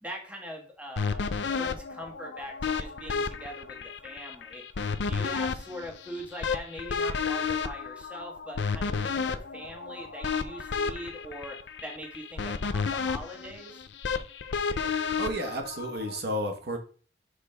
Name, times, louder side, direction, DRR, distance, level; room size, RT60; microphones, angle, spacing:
voice 1, 0.0-13.8, equal, 10° right, 1 dB, 1.4 m, -42 dB
sound 1, 1.0-16.2, left 5 dB, 75° left, 0.5 m, -32 dB
voice 2, 15.2-16.8, equal, 65° right, 4 dB, 1.0 m, -32 dB
6.3 x 4.9 x 3.3 m, 0.41 s
head